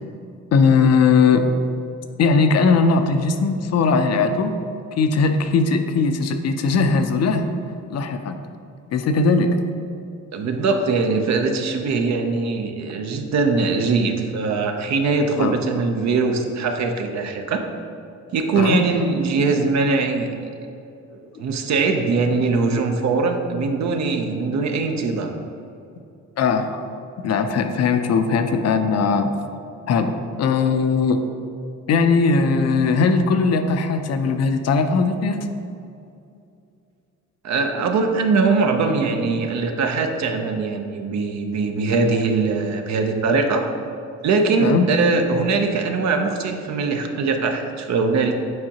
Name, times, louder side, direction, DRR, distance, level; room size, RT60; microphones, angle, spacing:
voice 1, 0.5-1.5 2.2-4.5 5.0-7.5 7.9-8.4 8.9-9.6 15.4-15.5 18.5-18.8 26.4-26.8 27.2-29.3 29.9-30.1 30.4-31.2 31.9-35.4 44.6-44.9, left 4 dB, 55° left, 7 dB, 0.5 m, -19 dB
voice 2, 10.3-17.6 18.3-20.3 21.1-25.3 37.4-43.7 44.2-48.4, right 4 dB, 65° right, 5 dB, 0.7 m, -21 dB
7.6 x 4.7 x 2.9 m, 2.6 s
cardioid pair, 90°, 30 cm